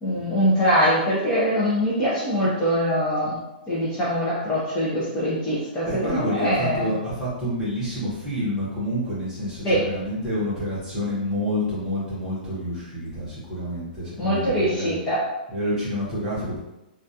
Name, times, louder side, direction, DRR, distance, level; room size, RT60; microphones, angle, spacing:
voice 1, 0.0-3.4 3.7-6.9 9.6-9.8 14.2-15.2, equal, 15° left, -9 dB, 0.4 m, -23 dB
voice 2, 5.8-14.9 15.5-16.6, equal, 10° right, -9 dB, 0.8 m, -28 dB
2.2 x 2.2 x 2.7 m, 0.96 s
hypercardioid pair, 170°, 5 cm